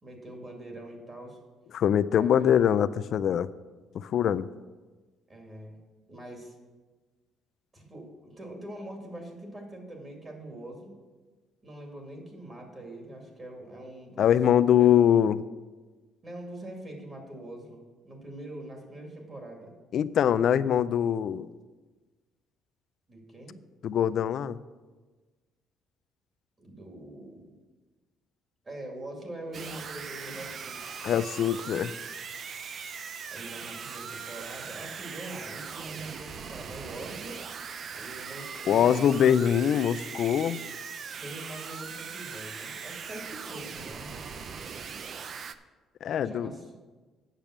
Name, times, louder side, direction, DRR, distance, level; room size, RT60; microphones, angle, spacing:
voice 1, 0.0-1.4 2.2-2.7 5.3-5.8 6.1-6.5 7.7-11.0 11.6-14.3 14.8-14.9 16.2-19.7 23.1-23.6 26.6-27.5 28.6-31.2 33.3-37.4 38.0-38.9 41.2-44.5 46.2-46.8, right 1 dB, 25° right, 1 dB, 2.2 m, -43 dB
voice 2, 1.7-3.5 3.9-4.5 14.2-15.4 19.9-21.5 23.8-24.6 31.0-31.9 38.7-40.6 46.0-46.5, left 9 dB, 55° left, 16 dB, 0.3 m, -23 dB
sound 1, 29.5-45.5, right 6 dB, 45° right, 0.5 m, -40 dB
8.9 x 6.8 x 5.9 m, 1.3 s
cardioid pair, 135°, 0 cm